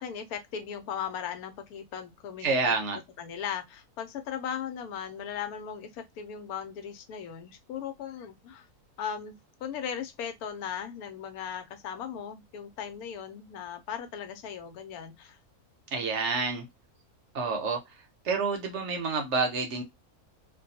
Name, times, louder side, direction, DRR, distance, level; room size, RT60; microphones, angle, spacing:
voice 1, 0.0-2.8 3.2-8.7 9.0-9.3 9.6-15.4, left 8 dB, 90° left, 1.1 m, -37 dB
voice 2, 2.4-3.0 15.9-16.6 17.3-17.8 18.2-19.8, right 4 dB, 65° right, 0.8 m, -28 dB
2.5 x 2.2 x 2.6 m
omnidirectional pair, 1.5 m